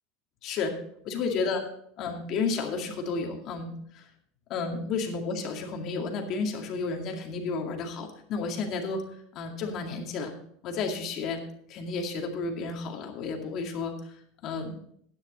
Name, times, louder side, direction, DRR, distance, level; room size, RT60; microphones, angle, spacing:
voice 1, 0.4-0.8 1.0-1.6 2.0-4.1 4.5-9.0 9.3-10.3 10.6-11.4 11.7-14.1 14.4-14.7, left 4 dB, 40° left, 2 dB, 2.2 m, -32 dB
12.0 x 9.7 x 4.1 m, 0.66 s
supercardioid pair, 155°, 0 cm